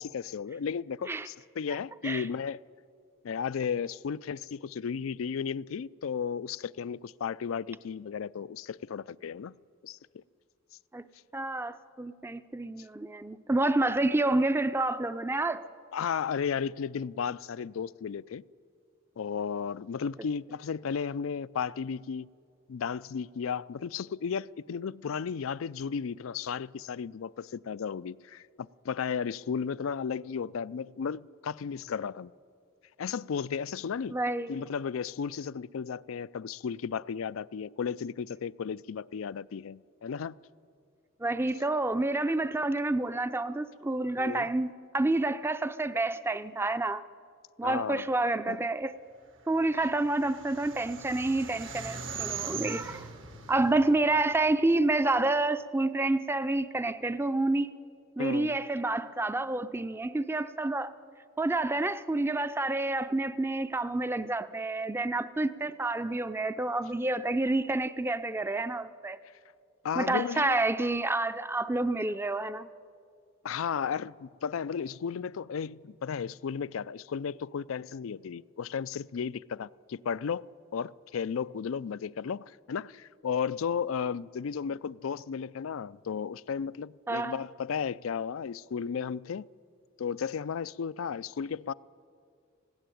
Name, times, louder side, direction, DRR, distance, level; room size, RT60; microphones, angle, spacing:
voice 1, 0.0-2.6 3.2-9.5 9.8-10.2 15.9-18.4 19.2-22.3 22.7-32.3 33.0-34.2 34.5-40.4 44.2-44.5 47.6-48.1 48.5-48.6 58.2-58.6 69.8-70.7 73.4-80.5 80.7-89.5 90.0-91.7, left 6 dB, 85° left, 0.4 m, -34 dB
voice 2, 11.3-15.6 34.1-34.7 41.2-47.0 47.6-49.0 49.5-53.1 53.5-57.7 58.2-60.9 61.4-69.2 70.0-72.7 87.1-87.4, right 2 dB, 10° right, 0.5 m, -29 dB
sound 1, 49.5-54.9, right 6 dB, 65° right, 1.6 m, -41 dB
19.5 x 16.5 x 9.2 m
head